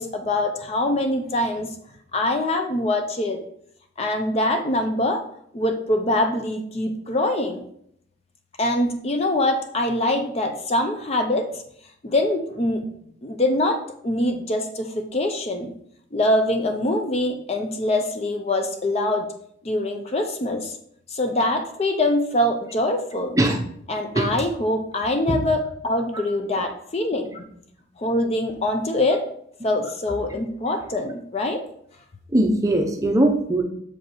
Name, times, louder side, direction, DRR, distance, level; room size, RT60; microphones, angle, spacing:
voice 1, 0.0-1.7 2.1-3.4 4.0-5.2 5.5-7.6 8.6-11.5 12.0-12.8 13.2-13.8 14.0-15.7 16.1-19.3 19.6-20.8 21.1-23.4 23.9-25.6 25.8-27.4 28.0-29.2 29.6-31.6, left 1 dB, 30° left, 5 dB, 0.5 m, -24 dB
voice 2, 32.3-33.6, right 1 dB, 15° right, 3 dB, 0.6 m, -20 dB
6.7 x 5.1 x 3.0 m, 0.69 s
head